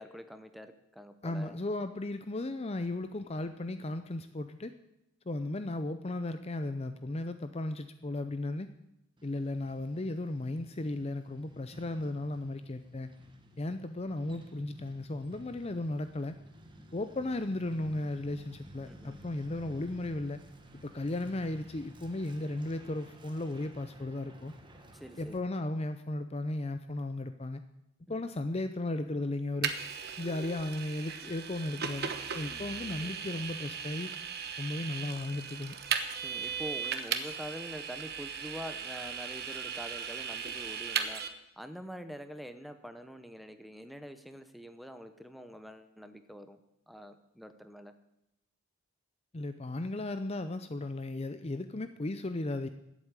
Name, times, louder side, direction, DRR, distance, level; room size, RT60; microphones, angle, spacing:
voice 1, 0.0-1.6 18.8-19.2 24.9-25.4 28.1-28.3 32.5-33.4 36.1-41.2 41.6-46.6 46.9-47.9, equal, ahead, 9 dB, 0.9 m, -46 dB
voice 2, 1.2-4.7 5.3-8.7 9.2-13.1 13.6-16.4 16.9-20.4 20.8-24.5 25.2-27.6 28.1-29.7 30.2-34.1 34.6-35.8 49.3-52.7, left 2 dB, 30° left, 10 dB, 0.5 m, -35 dB
Truck, 9.2-25.4, equal, 25° right, 1.4 m, -54 dB
Vehicle, 29.6-41.3, right 7 dB, 50° right, 1.1 m, -37 dB
12.5 x 8.2 x 9.0 m, 0.83 s
head